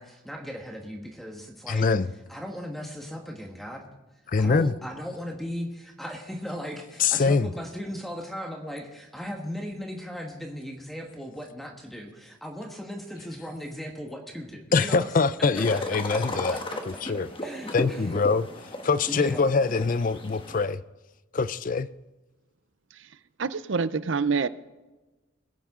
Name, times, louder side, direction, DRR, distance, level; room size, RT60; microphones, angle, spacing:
voice 1, 0.0-1.9 2.3-3.9 4.4-15.1 15.4-16.8 17.4-18.1 19.1-19.5, equal, ahead, 1.4 m, -37 dB
voice 2, 1.7-2.1 4.3-4.7 7.0-7.5 14.7-16.6 17.0-17.3 17.7-20.8 21.3-21.9, left 4 dB, 40° left, 0.5 m, -24 dB
sound 1, 15.5-20.6, left 1 dB, 25° left, 1.3 m, -36 dB
voice 3, 23.4-24.5, right 5 dB, 65° right, 0.6 m, -26 dB
21.5 x 9.1 x 3.7 m
head